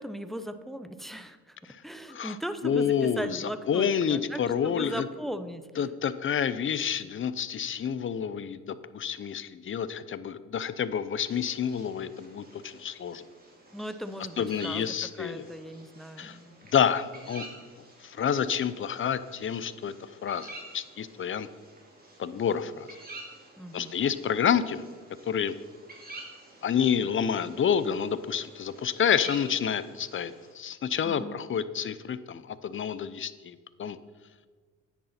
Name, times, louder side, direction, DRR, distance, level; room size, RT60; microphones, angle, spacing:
voice 1, 0.0-5.7 13.7-16.6 23.6-24.0 31.0-31.4, equal, ahead, 10 dB, 0.7 m, -38 dB
voice 2, 2.6-5.1 5.8-13.2 14.4-15.4 16.2-16.4 16.7-17.5 18.0-21.5 22.2-22.9 23.7-24.8 25.3-25.5 26.6-34.0, left 8 dB, 45° left, 15 dB, 0.7 m, -29 dB
sound 1, 11.3-30.5, right 2 dB, 30° right, 2.7 m, -50 dB
9.9 x 9.5 x 4.3 m, 1.5 s
cardioid pair, 90°, 30 cm